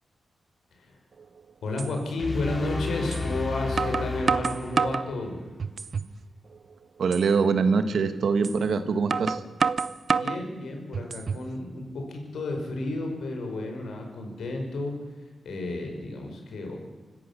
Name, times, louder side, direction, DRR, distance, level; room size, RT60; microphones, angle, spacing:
voice 1, 0.7-1.0 1.6-5.4 10.1-14.9 15.4-16.8, left 2 dB, 90° left, 3 dB, 5.0 m, -32 dB
sound 1, 1.2-1.3 1.8-1.9 3.1-3.2 3.8-5.1 5.6-6.1 6.5-6.6 7.1-7.3 8.4-8.6 9.1-10.4 10.9-11.5, right 5 dB, 60° right, 0.7 m, -27 dB
sound 2, 2.2-5.4, left 3 dB, 35° left, 3.4 m, -32 dB
voice 2, 7.0-9.4, right 5 dB, 75° right, 9 dB, 1.8 m, -24 dB
25.5 x 14.5 x 7.2 m, 1.4 s
cardioid pair, 85°, 0 cm